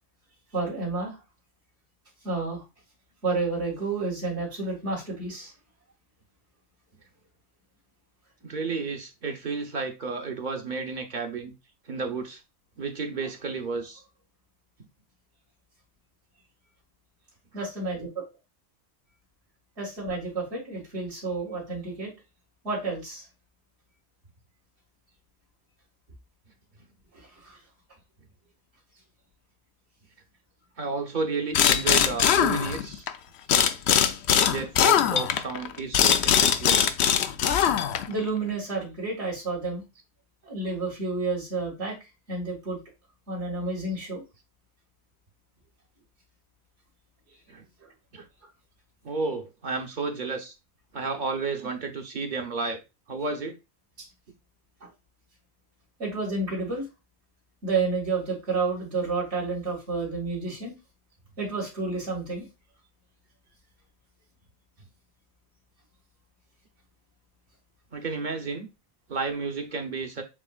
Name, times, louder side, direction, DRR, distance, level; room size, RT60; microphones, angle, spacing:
voice 1, 0.5-1.2 2.2-2.6 3.2-5.5 17.5-18.2 19.8-22.1 22.6-23.2 27.3-27.6 38.1-39.8 40.4-41.9 42.3-42.8 43.3-44.2 54.0-54.1 54.8-54.9 56.0-56.9 57.6-60.7 61.4-62.5, right 3 dB, 85° right, 2.3 m, -30 dB
voice 2, 8.4-11.5 11.9-12.4 12.8-14.0 30.8-33.1 34.4-37.0 47.5-47.6 48.1-48.3 49.0-50.5 50.9-52.8 53.1-53.6 67.9-68.7 69.1-70.2, right 4 dB, 50° right, 0.9 m, -32 dB
sound 1, 31.5-33.1 33.5-38.2, left 9 dB, 70° left, 0.8 m, -21 dB
7.2 x 2.9 x 2.3 m
omnidirectional pair, 1.1 m